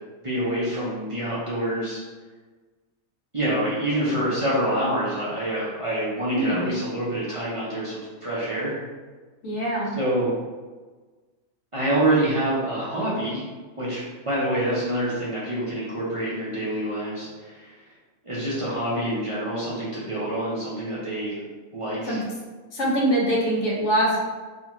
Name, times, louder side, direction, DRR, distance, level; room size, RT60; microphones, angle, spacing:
voice 1, 0.2-2.0 3.3-8.7 10.0-10.3 11.7-13.5 13.8-17.7 18.2-21.4 21.7-22.2, right 1 dB, 45° right, -9 dB, 0.4 m, -26 dB
voice 2, 6.3-6.7 9.4-10.0 22.0-22.2 22.7-24.2, right 1 dB, 65° left, -3 dB, 1.0 m, -23 dB
2.6 x 2.4 x 3.0 m, 1.4 s
omnidirectional pair, 1.4 m